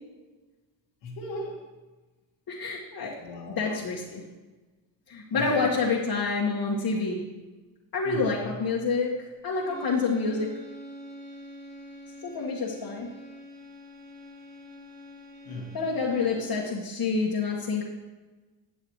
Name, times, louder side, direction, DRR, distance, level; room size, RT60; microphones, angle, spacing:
voice 1, 1.0-1.6 3.2-3.9 5.3-5.7 8.0-8.6 15.4-15.9, left 1 dB, 85° left, -3 dB, 2.2 m, -38 dB
voice 2, 2.5-3.2 3.5-4.2 5.1-7.2 7.9-10.6 12.2-13.1 15.7-17.8, left 4 dB, 50° left, -4 dB, 1.8 m, -28 dB
sound 1, 9.6-16.8, equal, 35° right, 2.4 m, -45 dB
13.5 x 8.2 x 3.2 m, 1.2 s
supercardioid pair, 65°, 46 cm